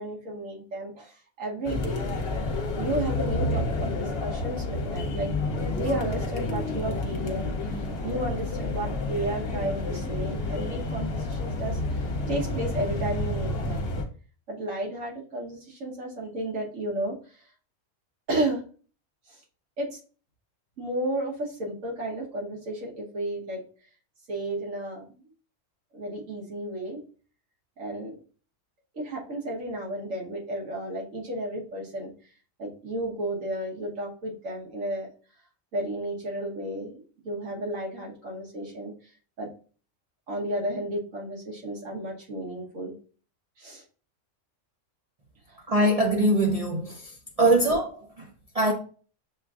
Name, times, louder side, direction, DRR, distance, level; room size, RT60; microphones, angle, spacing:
voice 1, 0.0-2.0 2.8-4.6 4.9-5.3 5.6-13.9 14.5-17.1 18.3-18.6 19.3-19.4 19.8-20.0 20.8-23.6 24.3-25.2 25.9-27.0 27.8-28.2 28.9-32.1 32.6-35.1 35.7-38.9 39.4-39.5 40.3-42.9 43.6-43.8 45.5-45.6 47.4-47.6, right 1 dB, 80° right, 1.5 m, -33 dB
sound 1, 1.6-14.0, left 2 dB, 55° left, 1.0 m, -30 dB
voice 2, 45.7-47.0 47.4-47.9 48.5-48.7, right 1 dB, 45° right, 0.5 m, -21 dB
6.9 x 2.6 x 2.3 m
omnidirectional pair, 1.3 m